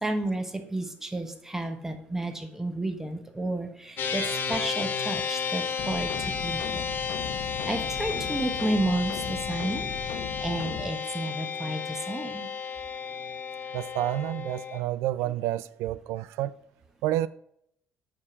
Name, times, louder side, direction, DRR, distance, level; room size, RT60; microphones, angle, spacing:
voice 1, 0.0-6.1 6.4-6.8 7.6-12.5 15.2-15.3, right 1 dB, 10° right, 1.3 m, -32 dB
sound 1, 4.0-14.8, left 6 dB, 50° left, 1.6 m, -32 dB
sound 2, 5.8-10.9, left 7 dB, 75° left, 1.0 m, -38 dB
voice 2, 13.7-16.6 17.0-17.3, right 14 dB, 90° right, 0.3 m, -29 dB
8.5 x 4.9 x 5.9 m
cardioid pair, 115°, 4 cm